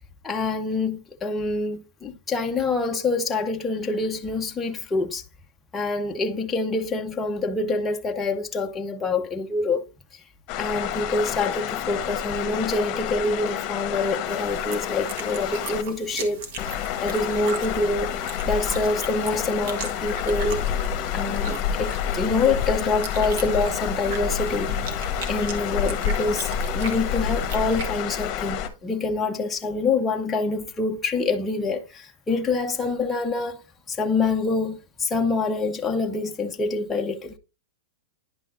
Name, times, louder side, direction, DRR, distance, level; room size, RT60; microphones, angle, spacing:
voice 1, 0.2-5.2 5.7-9.8 10.6-18.1 18.4-20.6 21.1-24.7 25.3-33.6 33.9-37.4, left 3 dB, 10° left, 0.7 m, -26 dB
sound 1, 10.5-15.8 16.6-28.7, left 8 dB, 35° left, 1.2 m, -28 dB
sound 2, 14.3-27.8, right 4 dB, 50° right, 1.5 m, -39 dB
10.0 x 5.6 x 2.6 m
supercardioid pair, 150°, 0 cm